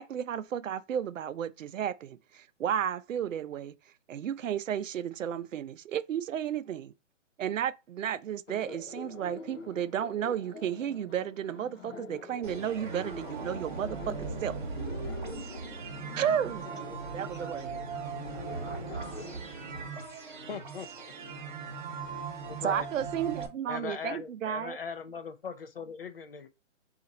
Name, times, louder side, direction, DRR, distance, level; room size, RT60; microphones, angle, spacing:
voice 1, 0.0-3.7 4.1-6.9 7.4-14.6 16.1-16.6 17.1-17.6 22.6-24.8, right 9 dB, 85° right, 0.5 m, -33 dB
Laughter, 8.5-19.4, left 4 dB, 80° left, 0.9 m, -46 dB
sound 1, 12.4-23.5, right 4 dB, 40° right, 0.9 m, -39 dB
voice 2, 16.6-19.4, right 2 dB, 5° right, 0.6 m, -51 dB
voice 3, 20.5-21.1 22.5-22.9 23.7-26.5, left 6 dB, 50° left, 0.5 m, -39 dB
4.0 x 2.5 x 4.0 m
hypercardioid pair, 170°, 38 cm